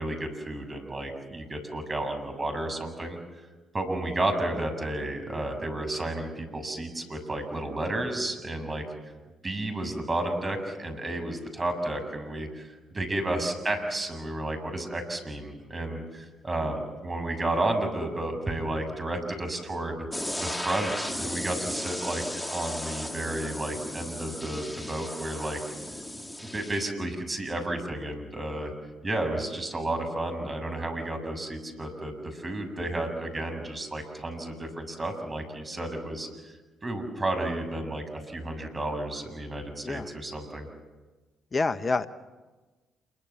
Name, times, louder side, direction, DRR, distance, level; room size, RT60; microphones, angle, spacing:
voice 1, 0.0-3.2 3.7-8.8 9.4-12.7 12.9-20.0 20.4-25.6 26.5-28.7 29.0-36.3 36.8-40.7, right 1 dB, 30° right, 6 dB, 7.2 m, -32 dB
sound 1, 20.1-26.9, left 1 dB, 10° left, 2.8 m, -35 dB
voice 2, 41.5-42.1, left 3 dB, 40° left, 11 dB, 1.4 m, -27 dB
28.0 x 23.5 x 7.3 m, 1.2 s
hypercardioid pair, 50°, 0 cm